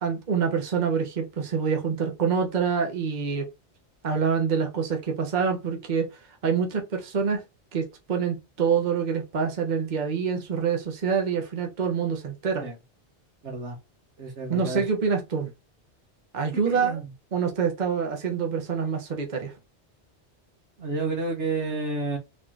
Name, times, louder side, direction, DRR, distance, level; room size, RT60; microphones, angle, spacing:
voice 1, 0.0-3.5 4.0-6.1 6.4-7.4 7.7-12.7 14.5-15.5 16.3-17.0 17.3-19.5, right 6 dB, 45° right, 1.0 m, -26 dB
voice 2, 13.4-13.8 14.2-14.8 16.7-17.1 20.8-22.2, right 3 dB, 85° right, 1.8 m, -30 dB
4.1 x 3.0 x 3.8 m
omnidirectional pair, 1.1 m